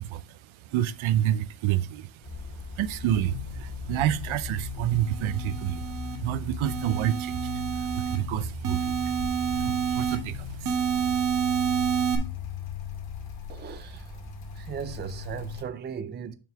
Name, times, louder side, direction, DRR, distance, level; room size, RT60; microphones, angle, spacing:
voice 1, 0.0-2.5 2.7-9.2 9.5-11.2, right 12 dB, 75° right, 0.6 m, -29 dB
sound 1, 2.2-15.6, left 4 dB, 45° left, 2.6 m, -38 dB
sound 2, 3.3-10.9, left 6 dB, 70° left, 1.0 m, -42 dB
sound 3, 5.0-6.2 6.7-8.2 8.6-10.2 10.7-12.2, right 8 dB, 40° right, 1.2 m, -28 dB
voice 2, 13.5-14.2 14.6-16.4, right 7 dB, 25° right, 0.4 m, -37 dB
6.9 x 6.1 x 3.4 m
cardioid pair, 135°, 48 cm